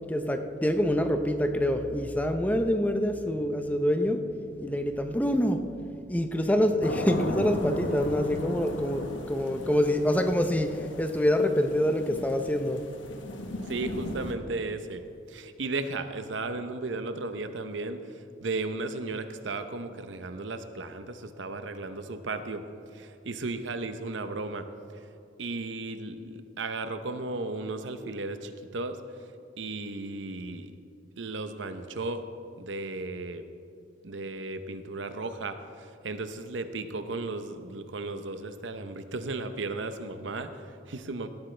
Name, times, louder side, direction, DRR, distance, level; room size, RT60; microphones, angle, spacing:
voice 1, 0.1-4.2 4.6-5.6 6.1-12.8, left 1 dB, 10° left, 6 dB, 0.6 m, -26 dB
sound 1, 6.8-14.3, left 1 dB, 80° left, 1.2 m, -36 dB
voice 2, 13.6-15.0 15.3-18.0 18.4-22.6 22.9-24.7 25.4-29.0 29.6-30.7 31.2-32.2 32.6-33.4 34.0-41.3, right 3 dB, 75° right, 9 dB, 0.8 m, -35 dB
17.5 x 12.0 x 3.3 m, 2.6 s
head